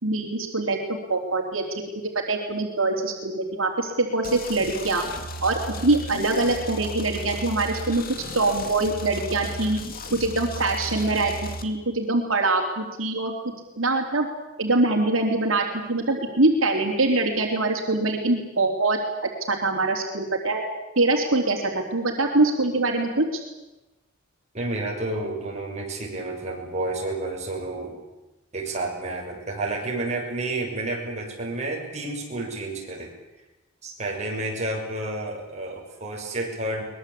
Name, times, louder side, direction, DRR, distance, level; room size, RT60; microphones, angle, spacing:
voice 1, 0.0-1.6 2.3-5.0 5.4-8.0 8.3-9.8 10.1-13.3 13.8-14.3 14.6-19.0 19.5-20.6 20.9-23.4, right 2 dB, 85° right, 1 dB, 3.4 m, -23 dB
sound 1, 4.2-11.6, equal, 45° left, 2.4 m, -35 dB
voice 2, 24.5-28.0 28.5-33.1 33.8-36.8, right 2 dB, 35° right, -1 dB, 6.6 m, -30 dB
23.0 x 21.0 x 8.5 m, 1.0 s
head